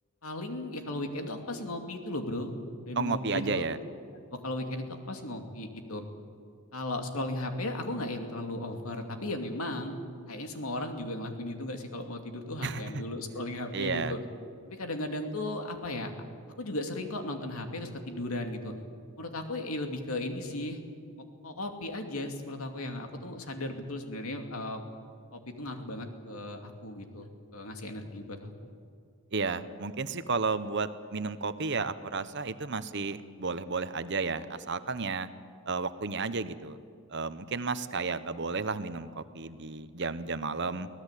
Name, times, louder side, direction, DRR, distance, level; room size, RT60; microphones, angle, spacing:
voice 1, 0.2-2.5 2.9-3.7 4.1-6.1 6.7-10.0 10.3-14.2 14.7-16.1 16.6-18.7 19.2-20.8 21.4-24.8 25.3-28.7, left 1 dB, 75° left, 4 dB, 2.6 m, -36 dB
voice 2, 3.0-3.8 12.6-13.0 13.7-14.1 29.3-35.3 35.7-36.8 37.1-40.9, right 4 dB, 50° right, 12 dB, 1.0 m, -32 dB
24.0 x 17.5 x 8.3 m, 2.3 s
head